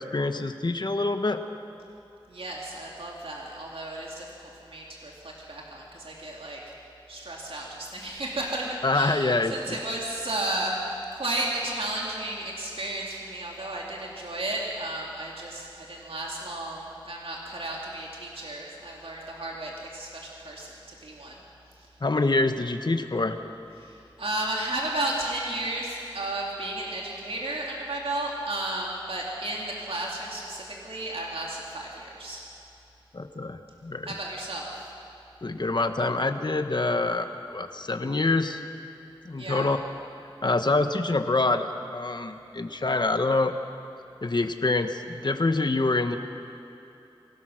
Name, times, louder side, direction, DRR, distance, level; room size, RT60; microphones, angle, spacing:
voice 1, 0.0-1.4 8.8-9.5 22.0-23.3 33.1-34.1 35.4-38.6 39.2-39.8 40.4-43.5 44.2-46.2, left 2 dB, 50° left, 7 dB, 1.2 m, -26 dB
voice 2, 2.3-6.6 7.1-21.4 21.8-21.9 23.8-32.4 34.1-34.9 39.4-39.7, right 1 dB, 85° right, -2 dB, 2.6 m, -33 dB
23.0 x 18.0 x 6.4 m, 3.0 s
wide cardioid pair, 70°, 9 cm